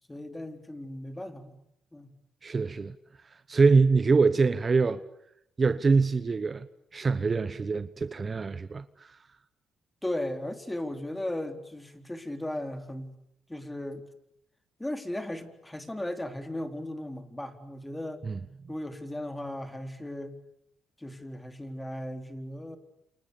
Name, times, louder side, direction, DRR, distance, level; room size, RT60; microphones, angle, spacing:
voice 1, 0.1-1.6 1.9-2.1 10.0-13.1 13.5-14.0 14.8-18.2 18.7-20.4 21.0-22.8, left 1 dB, 10° left, 4.0 m, -36 dB
voice 2, 2.4-3.0 3.5-5.0 5.6-6.7 6.9-9.2 18.3-18.4, right 4 dB, 35° right, 1.1 m, -24 dB
29.0 x 28.5 x 7.1 m
cardioid pair, 90°, 0 cm